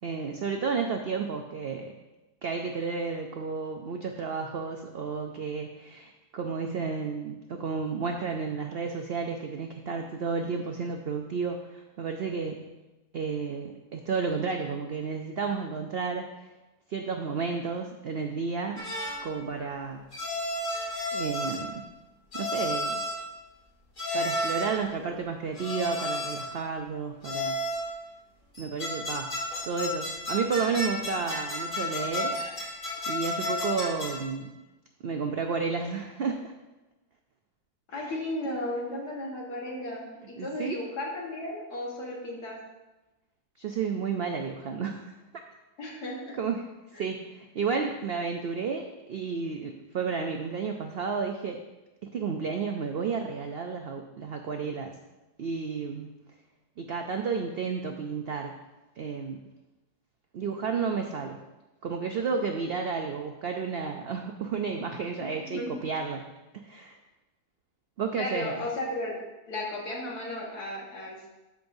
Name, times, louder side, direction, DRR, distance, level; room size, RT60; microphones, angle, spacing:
voice 1, 0.0-1.9 2.4-12.7 13.1-16.3 16.9-18.9 19.2-20.1 21.1-21.9 22.3-23.0 24.1-27.6 28.6-29.3 29.6-32.4 33.1-34.5 35.0-36.5 38.1-38.2 40.4-40.8 43.6-45.0 46.4-46.6 47.0-51.6 52.0-55.0 55.4-56.2 56.8-58.6 59.0-59.4 60.3-61.4 61.8-66.2 66.6-67.0 68.0-68.6, right 5 dB, 85° right, 4 dB, 0.5 m, -32 dB
sound 1, 18.8-19.3 20.1-21.8 22.3-23.2 24.0-24.8 25.6-26.6 27.2-27.9 28.5-34.3, left 1 dB, 35° left, 1.4 m, -32 dB
voice 2, 37.9-42.6 45.8-46.4 46.9-47.0 65.2-65.8 68.1-69.2 69.5-71.3, left 1 dB, 80° left, -3 dB, 2.1 m, -35 dB
12.5 x 5.4 x 2.6 m, 1.1 s
omnidirectional pair, 1.7 m